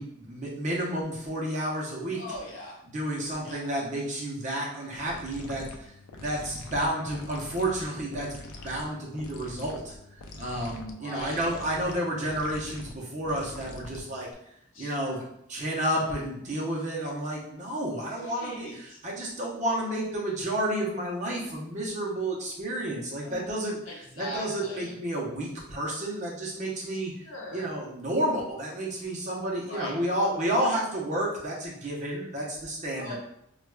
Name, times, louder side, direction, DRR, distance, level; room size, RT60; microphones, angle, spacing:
voice 1, 0.0-2.2 2.9-5.8 6.2-8.4 8.6-9.9 10.4-14.3 14.8-23.8 24.2-33.2, right 1 dB, 35° right, -3 dB, 0.7 m, -31 dB
voice 2, 2.1-2.8 3.4-3.7 6.6-7.2 10.9-11.5 14.7-15.3 18.1-19.0 23.2-23.4 23.8-25.0 27.2-27.7 29.7-30.0 33.0-33.2, left 1 dB, 65° left, -2 dB, 0.9 m, -41 dB
sound 1, 5.1-14.3, left 2 dB, 90° left, 0.4 m, -44 dB
4.5 x 2.3 x 2.2 m, 0.74 s
head